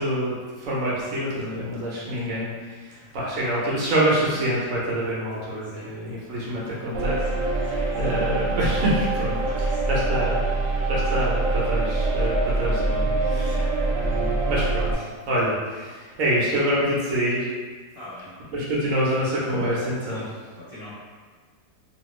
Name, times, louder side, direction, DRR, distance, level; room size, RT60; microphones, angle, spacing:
voice 1, 0.0-7.2 7.5-10.5 10.9-17.5 18.5-20.2, equal, 55° right, -6 dB, 1.0 m, -26 dB
voice 2, 2.9-3.5 5.6-5.9 7.7-8.1 9.4-9.9 13.3-13.7 17.9-18.3 20.1-20.3 20.5-20.9, left 1 dB, 30° left, -15 dB, 0.7 m, -44 dB
sound 1, 6.9-14.9, right 2 dB, 70° right, 1.2 m, -24 dB
2.8 x 2.8 x 3.0 m, 1.5 s
omnidirectional pair, 1.9 m